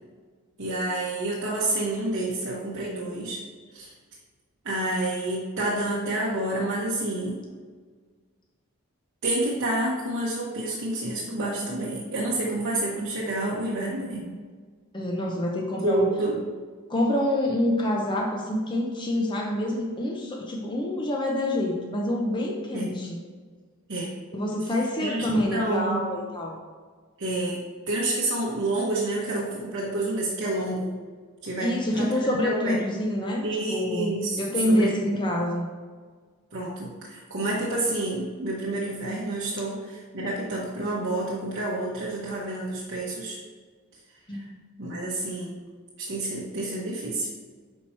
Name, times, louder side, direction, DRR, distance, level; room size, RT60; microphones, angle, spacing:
voice 1, 0.6-3.4 3.7-3.9 4.6-7.4 9.2-14.3 15.8-16.4 22.7-22.9 23.9-24.1 25.0-26.0 27.2-27.6 27.9-31.0 31.4-32.8 33.4-34.4 34.7-34.9 36.5-43.4 44.8-45.6 46.0-47.3, right 2 dB, 55° right, -5 dB, 0.9 m, -29 dB
voice 2, 14.9-16.1 16.9-23.2 24.3-26.6 31.6-35.7 44.3-44.5, left 1 dB, 20° left, -1 dB, 0.6 m, -26 dB
5.7 x 4.5 x 4.3 m, 1.5 s
head